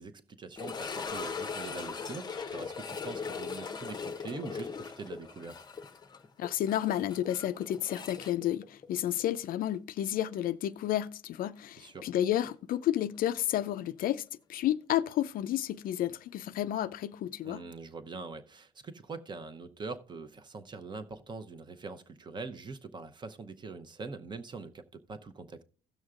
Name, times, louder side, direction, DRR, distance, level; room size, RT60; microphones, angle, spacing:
voice 1, 0.0-5.6 11.8-12.1 17.4-25.6, right 4 dB, 25° right, 0.8 m, -43 dB
sound 1, 0.6-9.5 9.7-9.8 10.5-10.6 13.1-13.2, left 5 dB, 25° left, 0.7 m, -40 dB
voice 2, 6.4-14.2 14.5-17.6, left 12 dB, 60° left, 0.4 m, -31 dB
17.0 x 6.2 x 2.4 m
cardioid pair, 110°, 17 cm